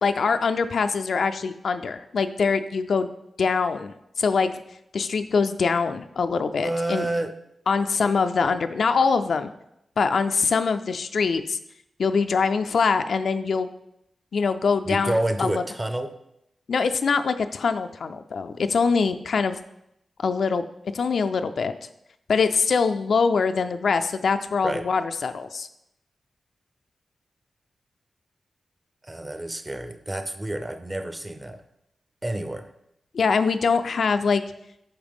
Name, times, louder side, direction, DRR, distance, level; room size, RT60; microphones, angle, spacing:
voice 1, 0.0-3.1 3.4-4.5 4.9-7.1 7.7-9.5 10.0-11.6 12.0-13.7 14.3-15.6 16.7-19.6 20.2-20.6 20.9-21.7 22.3-25.7 33.1-34.4, left 5 dB, 65° left, 9 dB, 0.4 m, -23 dB
voice 2, 6.6-7.3 14.8-16.1 24.6-24.9 29.0-31.6 32.2-32.7, right 1 dB, 15° right, 8 dB, 0.5 m, -29 dB
8.7 x 5.5 x 3.5 m, 0.82 s
wide cardioid pair, 150°, 0 cm